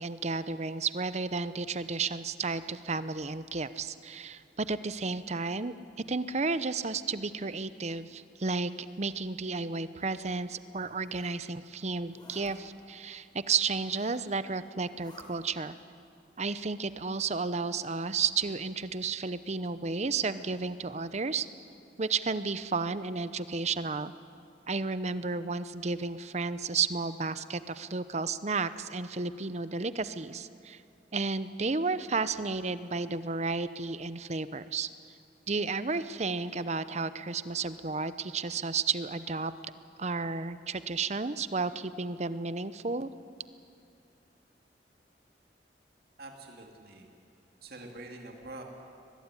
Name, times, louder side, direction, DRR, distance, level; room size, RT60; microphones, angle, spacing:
voice 1, 0.0-5.7 6.1-8.7 9.0-15.7 16.4-21.5 22.0-24.1 24.7-30.8 31.1-34.9 35.5-39.5 40.0-43.1, right 4 dB, 40° right, 14 dB, 0.8 m, -32 dB
Zipper (clothing), 10.6-11.4 12.0-12.5 13.6-14.3 14.8-15.3, left 1 dB, 25° left, 4.4 m, -55 dB
voice 2, 46.2-47.1 47.6-48.6, right 2 dB, 60° right, 2 dB, 2.7 m, -45 dB
22.5 x 20.5 x 9.9 m, 2.5 s
head